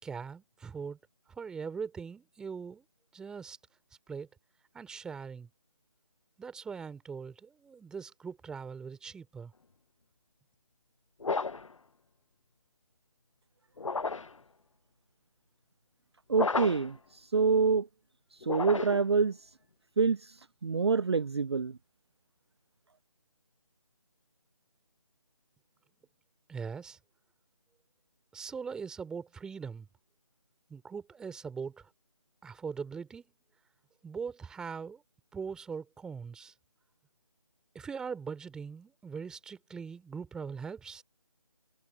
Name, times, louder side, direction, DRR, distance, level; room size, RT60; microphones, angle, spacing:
voice 1, 0.0-1.0 1.4-2.8 3.1-3.6 4.1-4.3 4.7-5.5 6.4-9.5 26.5-27.0 28.3-29.9 30.7-31.8 32.4-33.2 34.0-35.0 35.3-36.5 37.7-41.0, right 6 dB, 5° right, 3.0 m, -41 dB
sound 1, 11.2-11.8 13.8-14.4 16.3-17.0 18.4-19.2, left 4 dB, 65° left, 0.8 m, -32 dB
voice 2, 16.3-17.9 18.4-19.4 20.0-20.3 20.6-21.8, right 5 dB, 50° right, 0.6 m, -26 dB
figure-of-eight pair, 155°, 17 cm